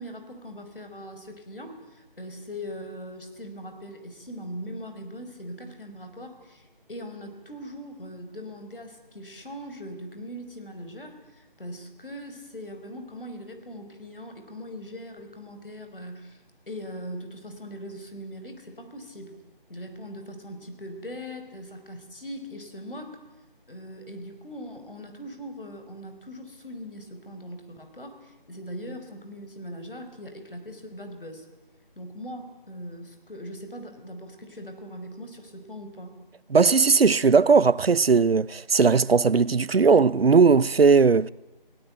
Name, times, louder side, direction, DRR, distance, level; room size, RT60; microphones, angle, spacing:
voice 1, 0.0-19.4 19.7-23.2 23.7-31.5 31.9-36.2, equal, 65° left, 5.0 m, -40 dB
voice 2, 36.5-41.3, right 5 dB, 90° right, 0.8 m, -18 dB
29.5 x 17.0 x 9.3 m
figure-of-eight pair, 175°, 29 cm